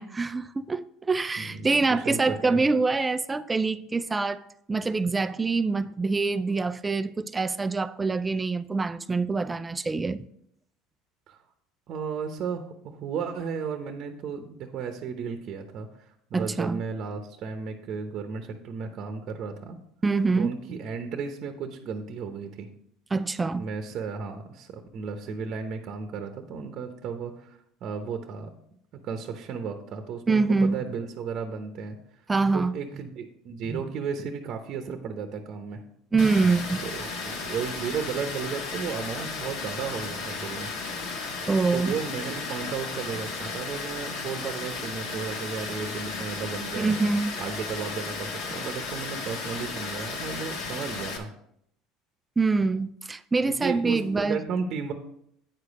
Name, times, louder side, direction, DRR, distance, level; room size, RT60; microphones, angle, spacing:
voice 1, 0.0-4.4 4.7-10.2 16.3-16.8 20.0-20.5 23.1-23.7 30.3-30.8 32.3-32.7 33.7-33.8 36.1-36.8 41.5-41.9 46.8-47.4 52.4-54.4, right 3 dB, 15° right, 0.4 m, -25 dB
voice 2, 1.4-2.6 11.3-11.4 11.9-19.8 20.4-22.7 23.6-28.5 29.0-32.2 32.5-35.8 36.8-40.7 41.7-47.0 47.4-51.3 53.5-54.9, right 6 dB, 50° right, 0.9 m, -34 dB
Water, 36.2-51.2, left 4 dB, 70° left, 1.7 m, -34 dB
9.2 x 4.9 x 5.2 m
supercardioid pair, 115°, 0 cm